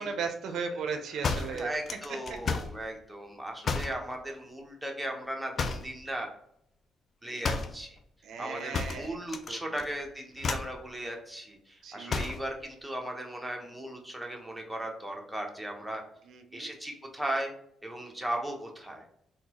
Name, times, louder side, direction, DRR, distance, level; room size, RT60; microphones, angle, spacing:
voice 1, 0.0-1.7 2.3-2.4 8.2-9.2 9.5-9.6 11.8-12.3 16.3-16.7, right 5 dB, 70° right, 6 dB, 0.4 m, -36 dB
sound 1, 1.2-2.8 3.6-4.0 5.6-6.0 7.4-7.8 8.7-9.5 9.8-10.1 10.4-10.8 12.1-12.5, left 4 dB, 45° left, 0.3 m, -32 dB
voice 2, 1.5-6.3 7.2-8.0 8.4-16.0 16.5-17.5 17.8-19.1, right 1 dB, 5° right, 1 dB, 0.7 m, -37 dB
3.7 x 2.2 x 2.9 m, 0.71 s
cardioid pair, 90°, 0 cm